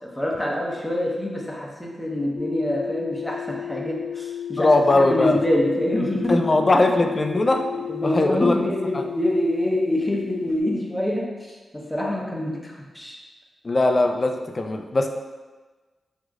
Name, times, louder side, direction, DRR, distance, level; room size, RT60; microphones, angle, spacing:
voice 1, 0.0-6.4 6.7-6.8 7.7-13.2, left 1 dB, 10° left, -3 dB, 0.9 m, -26 dB
sound 1, 2.4-10.6, left 9 dB, 80° left, 0.7 m, -33 dB
voice 2, 4.6-5.4 6.3-7.6 8.0-8.6 8.9-9.0 13.6-15.1, left 2 dB, 45° left, 5 dB, 0.4 m, -20 dB
5.2 x 3.0 x 2.4 m, 1.3 s
supercardioid pair, 40°, 0 cm